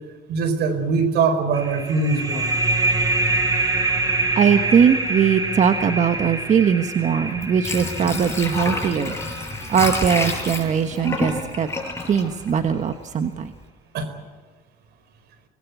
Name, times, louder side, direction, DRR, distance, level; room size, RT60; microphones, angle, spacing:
voice 1, 0.3-2.5 13.9-14.1, right 4 dB, 75° right, 10 dB, 4.7 m, -22 dB
sound 1, 1.5-10.8, right 2 dB, 20° right, 5.0 m, -25 dB
voice 2, 4.4-9.2 9.7-11.7 12.1-13.5, right 7 dB, 45° right, 7 dB, 1.4 m, -20 dB
Water / Sink (filling or washing), 7.2-13.1 13.5-13.6, left 2 dB, 15° left, 6.4 m, -29 dB
25.5 x 20.5 x 8.3 m, 1.5 s
cardioid pair, 110°, 17 cm